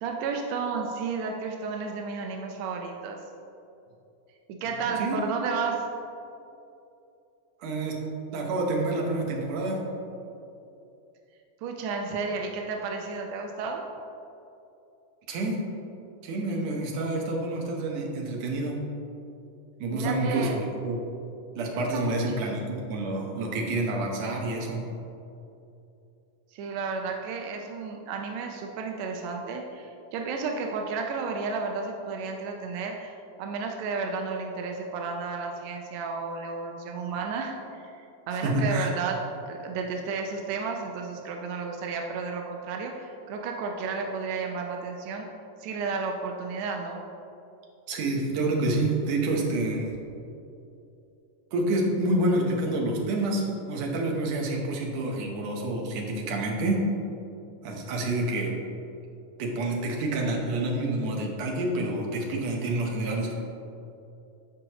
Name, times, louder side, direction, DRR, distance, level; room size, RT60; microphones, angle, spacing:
voice 1, 0.0-3.2 4.5-5.9 11.6-13.9 19.9-20.6 21.7-22.2 26.5-45.3 45.6-47.0, right 4 dB, 80° right, 2 dB, 1.6 m, -32 dB
voice 2, 4.8-5.3 7.6-8.0 8.3-9.8 15.3-15.6 16.2-18.8 19.8-21.0 21.6-24.8 38.4-38.9 47.9-49.9 51.5-56.9 57.6-58.6 59.4-63.3, right 2 dB, 65° right, 0 dB, 2.0 m, -28 dB
13.5 x 5.1 x 3.0 m, 2.7 s
omnidirectional pair, 3.7 m